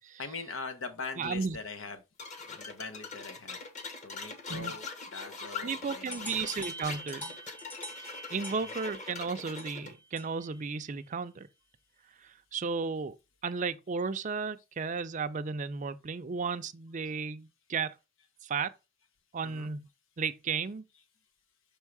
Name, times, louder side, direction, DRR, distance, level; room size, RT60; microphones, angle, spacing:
voice 1, 0.2-2.0 2.5-3.6 4.0-6.5 8.6-8.7 19.4-19.7, left 4 dB, 80° left, 0.9 m, -42 dB
voice 2, 1.2-1.6 4.5-4.7 5.6-7.4 8.3-11.5 12.2-13.2 13.4-18.0 18.4-18.7 19.3-19.9 20.2-20.8, right 5 dB, 40° right, 0.4 m, -34 dB
sound 1, 2.2-9.9, left 4 dB, 35° left, 1.2 m, -42 dB
sound 2, 6.1-10.6, equal, 10° left, 0.7 m, -45 dB
6.2 x 3.6 x 4.6 m
head